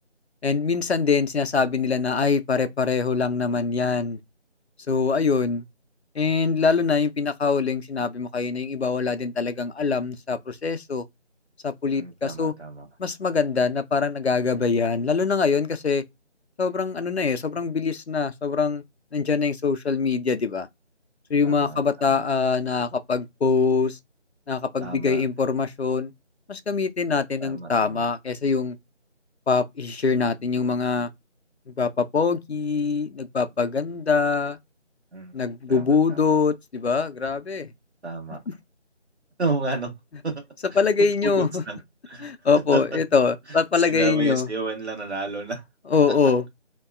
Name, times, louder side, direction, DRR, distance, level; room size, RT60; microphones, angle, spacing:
voice 1, 0.4-4.2 4.9-5.6 6.2-11.0 11.6-12.5 13.0-16.0 16.6-18.8 19.1-20.7 21.3-24.0 24.5-26.1 26.5-28.8 29.5-31.1 31.8-34.6 35.3-37.7 40.8-41.6 42.2-44.5 45.9-46.4, left 5 dB, 60° left, 0.5 m, -23 dB
voice 2, 11.9-12.9 17.1-17.2 21.4-21.8 22.1-22.2 24.8-25.2 27.4-28.1 35.1-35.3 35.7-36.4 38.0-38.4 39.4-39.9 40.2-40.3 40.7-40.8 41.2-41.8 42.1-42.3 42.7-43.0 43.5-43.6 43.8-45.6, right 3 dB, 65° right, 1.3 m, -31 dB
2.7 x 2.2 x 2.3 m
figure-of-eight pair, 175°, 36 cm